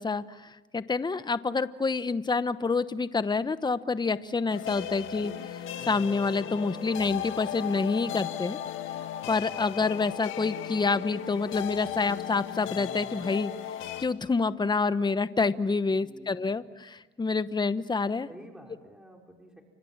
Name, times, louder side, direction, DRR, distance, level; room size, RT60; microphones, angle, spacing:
voice 1, 0.0-8.6 9.3-13.5 14.0-18.3, left 4 dB, 20° left, 13 dB, 1.0 m, -28 dB
sound 1, 4.5-14.1, left 10 dB, 85° left, 1.9 m, -36 dB
voice 2, 15.9-16.7 18.3-19.6, equal, 5° right, 1 dB, 5.0 m, -51 dB
30.0 x 26.5 x 7.4 m, 1.1 s
cardioid pair, 90°, 20 cm